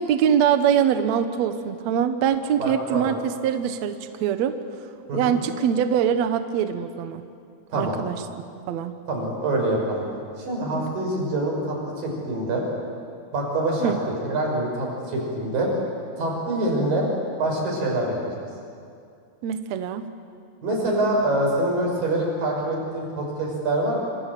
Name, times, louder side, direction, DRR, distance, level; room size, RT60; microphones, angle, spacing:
voice 1, 0.0-3.9 4.2-4.6 5.1-7.2 7.7-8.2 8.7-8.9 13.8-14.0 19.4-20.1, right 8 dB, 85° right, 9 dB, 1.5 m, -23 dB
voice 2, 2.6-3.1 5.1-5.4 7.7-8.0 9.1-10.0 10.4-12.6 13.3-15.7 16.2-17.1 17.4-18.4 20.6-24.0, right 1 dB, 55° right, -1 dB, 7.6 m, -25 dB
27.0 x 26.0 x 7.6 m, 2.4 s
omnidirectional pair, 4.9 m